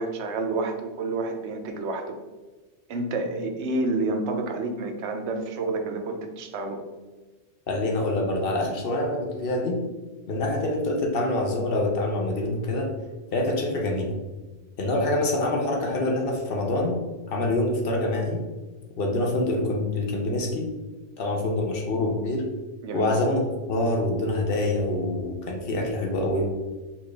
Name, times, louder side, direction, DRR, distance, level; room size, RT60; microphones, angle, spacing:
voice 1, 0.0-2.2 2.9-6.8 22.8-23.1, right 2 dB, 75° right, 5 dB, 0.8 m, -29 dB
voice 2, 7.7-9.8 10.3-12.9 13.3-14.2 14.8-17.0 17.3-18.4 19.0-20.7 21.2-22.4 22.9-26.4, left 2 dB, 55° left, 0 dB, 0.8 m, -25 dB
4.3 x 2.4 x 3.1 m, 1.2 s
omnidirectional pair, 1.2 m